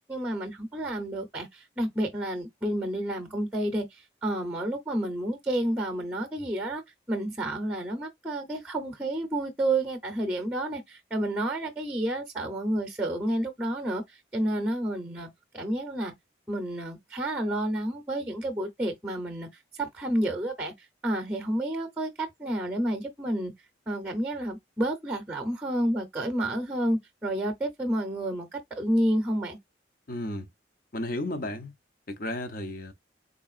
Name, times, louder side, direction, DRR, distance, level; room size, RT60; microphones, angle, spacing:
voice 1, 0.1-6.8 7.1-14.0 14.3-15.3 15.5-16.1 16.5-19.5 19.7-20.7 21.0-23.5 23.9-29.6, right 1 dB, 10° right, 0.7 m, -30 dB
voice 2, 30.1-30.5 30.9-31.7 32.1-32.9, left 1 dB, 50° left, 0.7 m, -33 dB
3.9 x 3.4 x 2.4 m
head